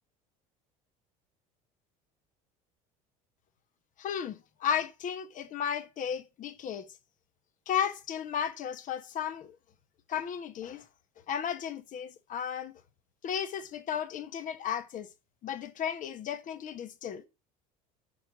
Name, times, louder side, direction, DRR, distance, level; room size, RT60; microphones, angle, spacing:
voice 1, 4.0-6.9 7.7-9.6 10.1-10.8 11.3-12.7 13.2-15.1 15.4-17.2, left 8 dB, 45° left, 1.1 m, -34 dB
4.5 x 4.5 x 5.7 m
supercardioid pair, 95°, 18 cm